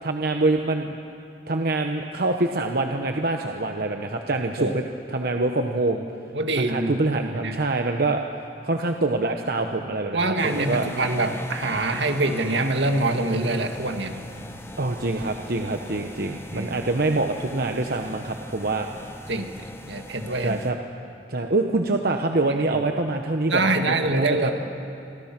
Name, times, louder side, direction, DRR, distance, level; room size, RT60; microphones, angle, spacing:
voice 1, 0.0-1.0 1.5-4.8 5.1-6.0 6.6-8.2 8.6-10.9 14.8-18.9 20.4-20.8 21.3-24.5, right 2 dB, 55° right, 4 dB, 1.0 m, -25 dB
voice 2, 6.3-7.6 10.1-14.1 16.5-16.7 19.3-19.6 19.9-20.6 23.5-24.5, right 2 dB, 75° right, 5 dB, 1.9 m, -25 dB
sound 1, 10.4-20.7, left 1 dB, 15° left, 1.3 m, -40 dB
26.0 x 25.5 x 6.0 m, 2.5 s
head